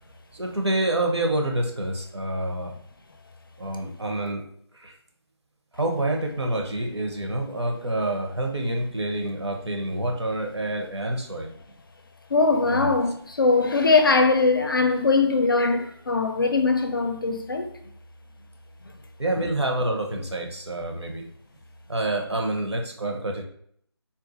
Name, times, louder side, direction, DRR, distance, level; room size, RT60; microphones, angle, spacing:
voice 1, 0.3-2.7 3.6-4.5 4.7-4.9 5.7-11.5 12.6-13.0 19.2-21.3 21.9-23.4, right 1 dB, 80° right, 0.7 m, -27 dB
voice 2, 12.3-17.7 19.4-19.5, left 3 dB, 55° left, 0.5 m, -21 dB
3.8 x 2.4 x 2.5 m
figure-of-eight pair, 155°, 14 cm